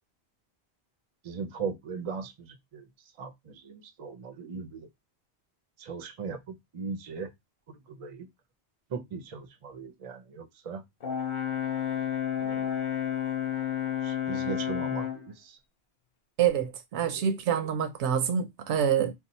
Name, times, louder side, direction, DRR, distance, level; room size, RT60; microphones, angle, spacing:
voice 1, 1.2-2.8 3.2-4.9 5.8-6.4 6.7-7.3 7.9-8.3 8.9-10.8 12.4-12.7 14.0-15.6 17.0-17.3, right 5 dB, 45° right, 0.4 m, -38 dB
Brass instrument, 11.0-15.3, left 10 dB, 50° left, 0.8 m, -31 dB
voice 2, 16.4-19.1, right 8 dB, 85° right, 0.9 m, -26 dB
2.7 x 2.0 x 3.9 m
omnidirectional pair, 1.1 m